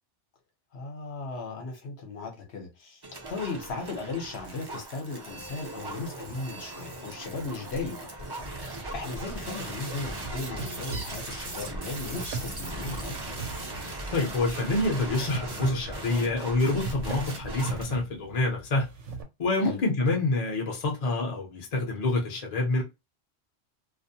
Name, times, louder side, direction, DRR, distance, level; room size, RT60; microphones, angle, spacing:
voice 1, 0.7-8.3 8.6-13.2 19.6-19.8, left 3 dB, 60° left, 1.1 m, -37 dB
sound 1, 3.0-17.8, right 2 dB, 30° right, 0.5 m, -38 dB
sound 2, 10.2-19.2, right 3 dB, 75° right, 0.9 m, -40 dB
voice 2, 14.1-18.8 19.4-22.8, left 2 dB, 40° left, 0.7 m, -27 dB
2.5 x 2.1 x 2.7 m
omnidirectional pair, 1.3 m